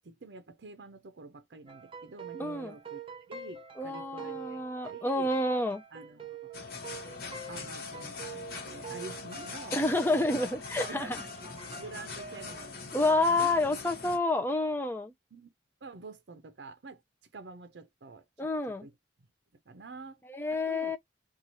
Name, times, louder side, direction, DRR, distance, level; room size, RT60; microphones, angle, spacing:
voice 1, 0.0-3.0 3.3-5.3 5.9-6.5 7.5-9.8 10.1-10.2 10.8-11.1 11.4-12.9 13.3-13.5 15.3-15.5 15.8-17.0 17.3-18.9 19.7-20.2 20.5-20.9, right 3 dB, 70° right, 0.6 m, -47 dB
sound 1, 1.7-12.7, right 5 dB, 30° right, 0.6 m, -46 dB
voice 2, 2.4-2.7 3.8-5.8 9.7-11.2 12.9-15.1 18.4-18.9 20.3-21.0, left 2 dB, 10° left, 0.5 m, -29 dB
sound 2, 6.5-14.2, left 4 dB, 55° left, 1.0 m, -42 dB
3.0 x 2.4 x 4.0 m
head